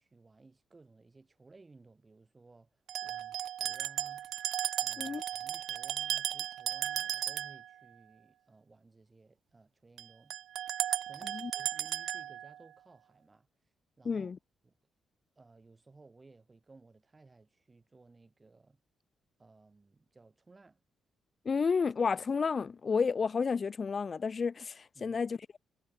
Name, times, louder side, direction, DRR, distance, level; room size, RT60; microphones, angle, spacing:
voice 1, 0.0-2.7 3.0-4.3 4.8-10.4 11.1-13.5 14.0-14.3 14.6-14.7 15.4-18.8 19.4-20.8 25.0-25.2, right 3 dB, 30° right, 5.3 m, -59 dB
sound 1, 2.9-7.7 10.0-10.1 10.3-12.6, right 11 dB, 75° right, 0.4 m, -35 dB
voice 2, 14.0-14.4 21.4-25.6, left 5 dB, 45° left, 0.7 m, -31 dB
cardioid pair, 70°, 0 cm